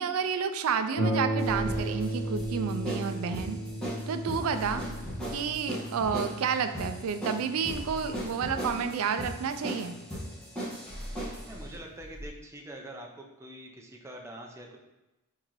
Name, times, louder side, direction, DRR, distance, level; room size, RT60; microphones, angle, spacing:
voice 1, 0.0-3.6 4.1-4.8 5.3-10.0, right 6 dB, 70° right, 9 dB, 0.4 m, -30 dB
Harp, 1.0-10.1 11.0-11.1 11.6-11.7, right 1 dB, 60° left, 0.7 m, -35 dB
sound 1, 1.4-2.5 4.5-5.5 7.6-8.7 10.8-12.3, equal, 30° left, 1.2 m, -43 dB
sound 2, 1.6-11.5, equal, 5° left, 1.4 m, -38 dB
voice 2, 11.5-14.8, right 1 dB, 15° right, 0 dB, 0.5 m, -44 dB
4.4 x 3.8 x 3.0 m, 1.0 s
head